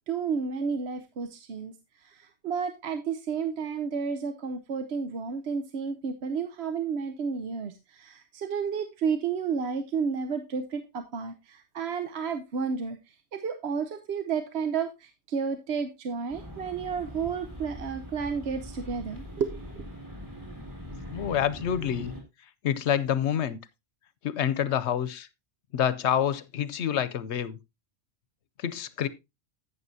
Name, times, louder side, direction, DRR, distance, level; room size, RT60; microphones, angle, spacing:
voice 1, 0.1-1.7 2.0-19.6, right 6 dB, 70° right, 1.0 m, -31 dB
sound 1, 16.3-22.2, equal, 15° right, 2.7 m, -42 dB
voice 2, 21.1-22.1 22.6-23.6 24.2-25.3 25.7-27.6 28.6-29.1, left 9 dB, 85° left, 1.0 m, -27 dB
11.0 x 8.8 x 2.7 m
omnidirectional pair, 1.1 m